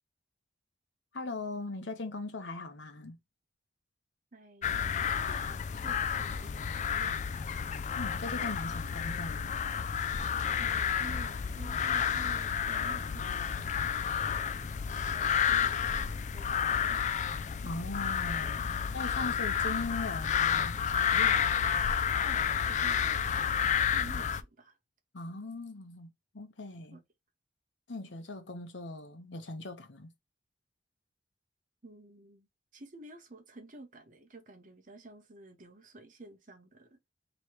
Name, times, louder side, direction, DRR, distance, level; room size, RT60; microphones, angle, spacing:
voice 1, 1.1-3.2 8.0-9.5 17.6-21.4 25.1-27.0 27.9-30.1, left 2 dB, 80° left, 0.9 m, -40 dB
voice 2, 4.3-7.2 10.6-17.1 18.8-19.0 22.2-24.8 26.9-27.0 31.8-32.5 32.7-37.0, right 2 dB, 45° right, 0.9 m, -51 dB
sound 1, 4.6-24.4, left 8 dB, 40° left, 0.3 m, -30 dB
3.1 x 3.0 x 4.4 m
head